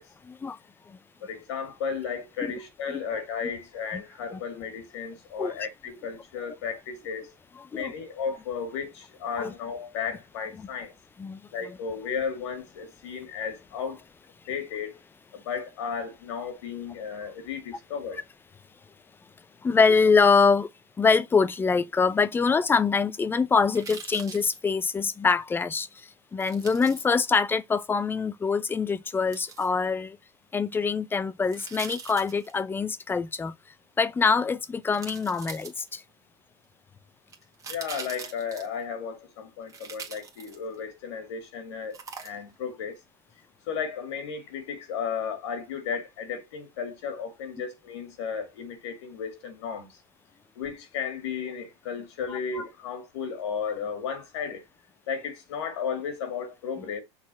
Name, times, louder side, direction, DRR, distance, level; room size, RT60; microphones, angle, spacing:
voice 1, 0.2-0.6 0.9-1.0 2.4-2.5 3.9-4.0 5.4-5.5 7.7-7.9 9.4-9.5 10.6-10.7 11.2-11.4 19.6-20.7 21.0-30.2 30.5-33.5 34.0-36.0 52.3-52.4, left 5 dB, 15° left, 0.5 m, -24 dB
voice 2, 1.2-7.3 7.7-10.9 11.5-14.0 14.5-15.0 15.3-18.2 37.7-42.0 42.2-43.0 43.7-49.9 50.6-54.6 55.1-57.0, left 6 dB, 80° left, 2.2 m, -34 dB
sound 1, 23.7-24.6 26.4-27.0 29.3-29.7 31.5-32.6 34.2-34.3 34.9-36.1 37.3-38.8 39.7-40.8 41.9-42.6 43.0-43.1, right 6 dB, 25° right, 1.7 m, -42 dB
6.1 x 4.1 x 6.2 m
supercardioid pair, 125°, 14 cm